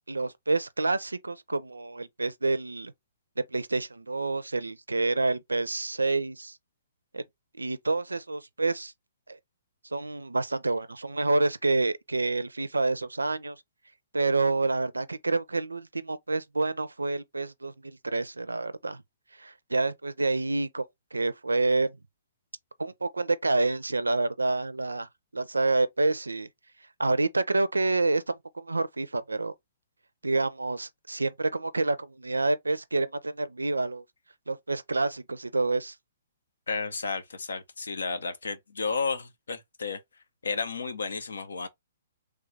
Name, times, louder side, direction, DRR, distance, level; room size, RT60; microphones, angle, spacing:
voice 1, 0.1-2.9 3.4-6.6 7.1-7.2 7.6-8.9 9.3-9.4 9.9-13.6 14.1-19.0 19.4-21.9 22.8-26.5 27.0-29.5 30.2-34.0 34.5-35.9, right 3 dB, 90° right, 0.4 m, -28 dB
voice 2, 36.7-40.0 40.4-41.7, left 4 dB, 75° left, 0.7 m, -32 dB
3.3 x 2.4 x 3.1 m
figure-of-eight pair, 125°, 0 cm